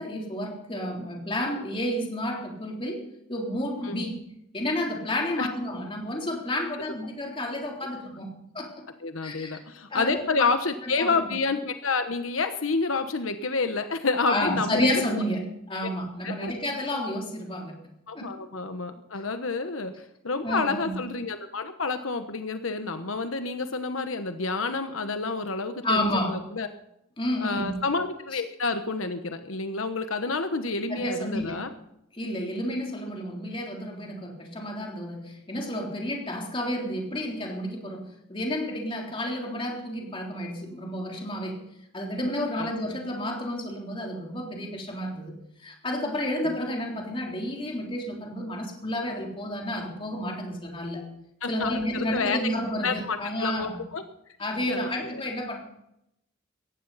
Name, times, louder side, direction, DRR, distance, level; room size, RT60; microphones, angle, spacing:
voice 1, 0.0-4.2 4.5-8.9 9.2-9.6 9.9-10.5 10.8-11.1 14.3-17.8 18.1-18.3 20.4-20.9 25.8-26.4 27.2-27.8 30.9-31.6 32.1-41.6 41.9-45.3 45.6-51.0 51.5-53.8 54.4-55.6, left 1 dB, 25° left, 0 dB, 3.6 m, -31 dB
voice 2, 9.0-15.0 15.8-15.9 16.2-16.5 18.1-26.7 27.4-31.7 42.6-42.7 46.4-46.5 51.4-52.5 52.8-54.0 54.7-55.2, left 4 dB, 85° left, 8 dB, 1.2 m, -29 dB
18.0 x 15.0 x 4.2 m, 0.80 s
head